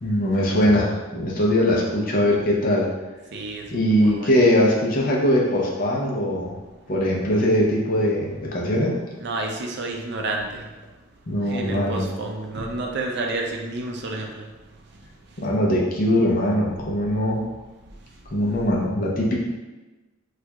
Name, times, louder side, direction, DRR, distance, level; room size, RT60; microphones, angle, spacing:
voice 1, 0.0-2.9 3.7-6.6 6.9-8.9 11.3-12.0 15.4-17.4 18.3-19.3, left 1 dB, 40° left, -3 dB, 0.6 m, -21 dB
voice 2, 3.3-3.6 4.0-4.3 9.2-10.6 11.5-14.4, right 2 dB, 50° right, 1 dB, 0.5 m, -30 dB
4.4 x 2.4 x 2.3 m, 1.2 s
head